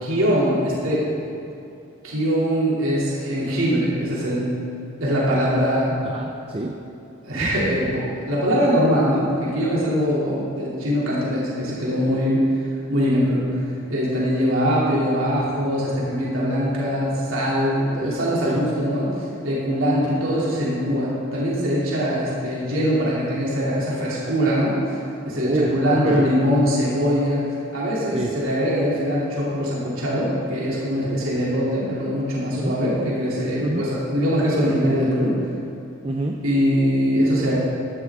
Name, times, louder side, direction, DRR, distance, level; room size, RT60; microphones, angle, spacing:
voice 1, 0.0-1.2 2.0-4.5 5.0-6.0 7.2-25.0 25.2-27.5 27.7-35.3 36.4-37.6, equal, 75° right, -7 dB, 2.9 m, -22 dB
voice 2, 6.0-6.7 7.3-7.5 18.0-18.2 18.4-18.6 25.4-26.3 28.1-28.3 31.1-31.2 32.6-32.8 33.6-33.8 36.0-36.4, right 2 dB, 25° right, 3 dB, 0.5 m, -27 dB
14.5 x 11.0 x 3.6 m, 2.7 s
head